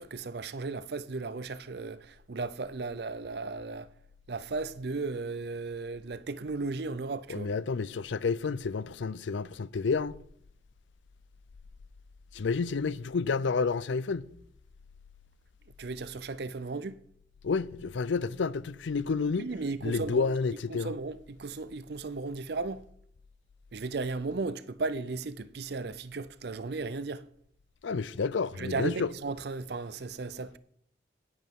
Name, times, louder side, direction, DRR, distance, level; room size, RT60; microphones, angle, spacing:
voice 1, 0.0-3.9 4.3-7.5 15.8-17.0 19.4-20.3 20.7-22.8 23.7-27.2 28.6-30.6, right 3 dB, 60° right, 0.5 m, -35 dB
voice 2, 7.3-10.2 12.3-14.3 17.4-19.5 19.8-20.9 27.8-29.1, left 4 dB, 75° left, 0.5 m, -30 dB
17.5 x 7.9 x 3.7 m
head